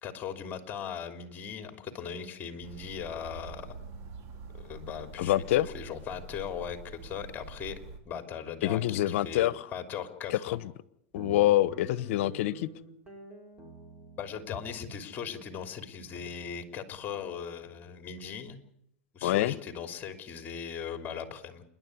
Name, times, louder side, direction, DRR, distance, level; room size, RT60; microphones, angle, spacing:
voice 1, 0.0-3.7 4.5-5.4 5.7-7.8 8.0-10.6 14.2-18.6 19.1-21.6, left 7 dB, 25° left, 7 dB, 3.1 m, -39 dB
sound 1, 2.6-8.0, right 4 dB, 50° right, 3.9 m, -46 dB
voice 2, 5.2-5.7 8.6-9.5 10.3-10.6 11.1-12.7 19.2-19.5, left 14 dB, 65° left, 18 dB, 1.0 m, -26 dB
Guitar, 11.2-17.9, right 2 dB, 15° right, 5.2 m, -50 dB
28.0 x 11.0 x 9.6 m, 0.75 s
hypercardioid pair, 125°, 7 cm